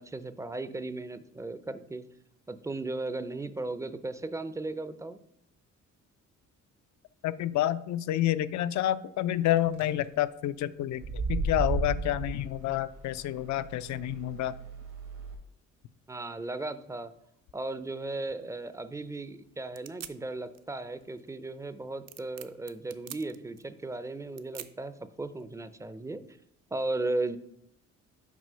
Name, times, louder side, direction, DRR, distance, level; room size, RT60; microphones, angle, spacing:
voice 1, 0.0-2.0 2.5-5.2 16.1-17.1 17.5-26.4 26.7-27.4, right 2 dB, 10° right, 13 dB, 0.4 m, -36 dB
voice 2, 7.2-14.5, left 13 dB, 70° left, 15 dB, 0.4 m, -29 dB
sound 1, 9.5-9.8 10.9-15.3, right 3 dB, 80° right, 1.7 m, -35 dB
sound 2, 17.6-25.7, right 9 dB, 60° right, 0.6 m, -50 dB
6.2 x 4.4 x 5.5 m, 0.75 s
cardioid pair, 90°, 30 cm